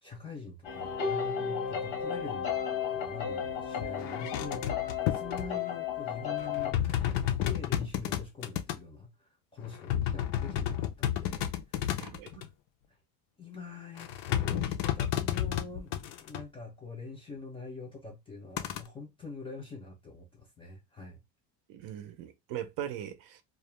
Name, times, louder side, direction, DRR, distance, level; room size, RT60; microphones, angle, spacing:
voice 1, 0.0-2.6 2.9-4.6 5.1-12.4 13.4-21.2, left 4 dB, 15° left, 0.3 m, -44 dB
sound 1, 0.6-6.7, left 7 dB, 85° left, 1.0 m, -33 dB
sound 2, 3.5-3.6 3.8-5.5 6.4-8.8 9.6-12.5 14.0-16.4 18.6-18.8, left 11 dB, 70° left, 0.5 m, -32 dB
voice 2, 12.0-12.5 21.7-23.4, right 11 dB, 65° right, 0.5 m, -40 dB
2.3 x 2.1 x 3.0 m
cardioid pair, 170°, 39 cm